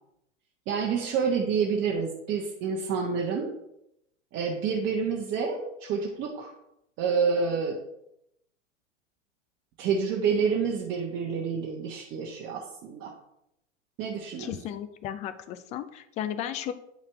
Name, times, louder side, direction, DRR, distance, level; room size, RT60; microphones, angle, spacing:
voice 1, 0.7-3.5 4.3-6.5 7.0-7.8 9.8-13.1 14.0-14.5, right 5 dB, 30° right, -1 dB, 1.1 m, -28 dB
voice 2, 14.4-16.7, left 10 dB, 20° left, 10 dB, 0.4 m, -34 dB
9.0 x 5.6 x 3.4 m, 0.80 s
figure-of-eight pair, 100°, 38 cm